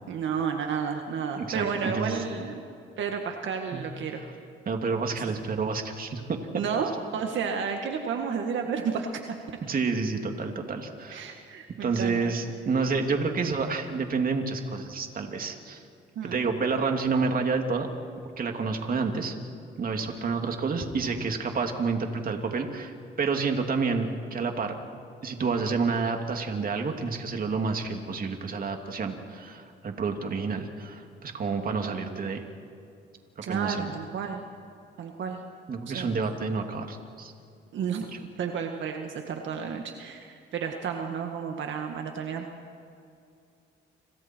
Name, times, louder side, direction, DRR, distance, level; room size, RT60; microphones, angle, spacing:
voice 1, 0.1-2.6 3.0-4.2 6.5-9.1 11.1-12.3 16.2-16.4 33.4-34.4 35.0-35.4 35.9-36.1 37.7-38.1 38.4-42.4, right 6 dB, 70° right, 3 dB, 1.9 m, -31 dB
voice 2, 1.4-2.2 3.7-3.8 4.7-6.2 9.7-11.2 11.8-15.8 16.2-17.9 18.4-19.3 19.8-24.8 25.2-32.4 33.5-33.9 35.7-37.3, right 4 dB, 45° right, 4 dB, 2.8 m, -29 dB
30.0 x 27.0 x 4.6 m, 2.5 s
cardioid pair, 90°, 20 cm